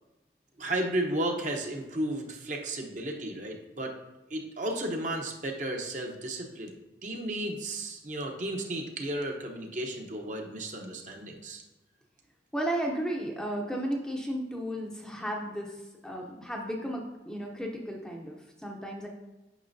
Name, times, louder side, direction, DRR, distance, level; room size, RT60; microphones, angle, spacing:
voice 1, 0.6-3.9 4.3-11.6, right 1 dB, 45° right, 2 dB, 0.9 m, -33 dB
voice 2, 12.5-19.1, right 1 dB, 5° left, 0 dB, 0.6 m, -34 dB
9.2 x 6.1 x 2.7 m, 1.0 s
head